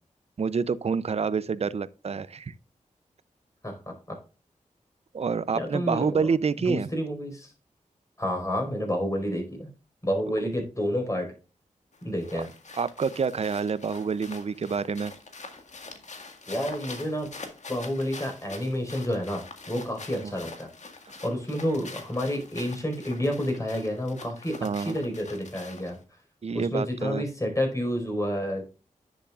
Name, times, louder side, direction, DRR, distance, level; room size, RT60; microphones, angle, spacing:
voice 1, 0.4-2.5 5.1-6.9 12.3-12.4 12.7-15.1 20.2-20.3 24.6-25.0 26.4-27.2, right 5 dB, 50° right, 0.6 m, -28 dB
voice 2, 3.6-4.2 5.5-6.2 6.6-7.5 8.2-9.7 10.0-11.3 12.0-12.5 16.5-17.3 17.7-20.7 21.2-26.0 26.5-28.7, equal, 25° left, 4.8 m, -29 dB
sound 1, 11.9-26.0, left 3 dB, 60° left, 1.8 m, -45 dB
10.0 x 7.4 x 2.4 m
cardioid pair, 55°, 13 cm